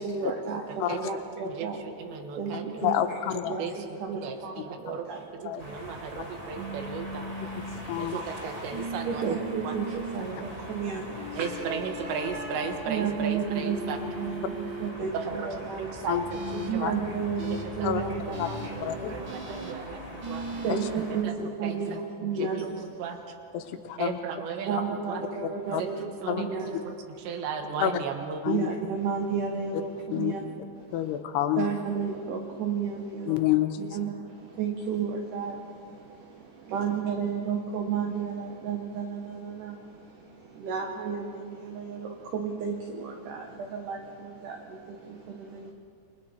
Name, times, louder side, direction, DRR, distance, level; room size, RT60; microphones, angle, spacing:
voice 1, 0.0-1.8 2.1-3.2 3.5-5.3 9.1-11.6 12.9-16.0 16.7-19.7 20.6-23.1 23.6-23.7 24.7-26.9 28.4-31.2 31.6-33.5 33.8-45.7, right 6 dB, 60° right, 2 dB, 2.4 m, -33 dB
voice 2, 1.6-2.9 3.6-5.1 5.4-7.3 8.0-9.4 9.6-9.7 11.4-14.0 15.1-17.0 17.6-18.4 19.1-20.5 21.1-21.3 21.6-22.0 22.3-22.7 23.0-23.2 24.0-25.2 25.8-26.6 26.9-27.0 27.3-28.4, right 6 dB, 85° right, 5 dB, 3.7 m, -36 dB
voice 3, 2.8-3.5 5.4-5.6 7.6-8.2 11.4-11.6 16.1-16.2 16.8-16.9 17.8-18.0 18.4-18.5 18.8-19.1 20.7-20.8 22.4-22.5 23.5-24.2 25.4-25.8 26.3-26.4 27.8-27.9 28.4-28.7 30.1-30.3 30.9-31.7 33.3-34.0, left 12 dB, 80° left, 7 dB, 3.1 m, -28 dB
sound 1, 5.6-21.2, equal, 15° right, 1.5 m, -41 dB
sound 2, 6.5-7.8 8.7-10.2 11.1-12.8 13.5-14.9 16.3-16.7 17.4-17.6 18.3-18.7 19.2-19.7 20.2-20.9, right 2 dB, 40° right, 1.9 m, -38 dB
30.0 x 25.0 x 4.5 m, 2.4 s
omnidirectional pair, 4.9 m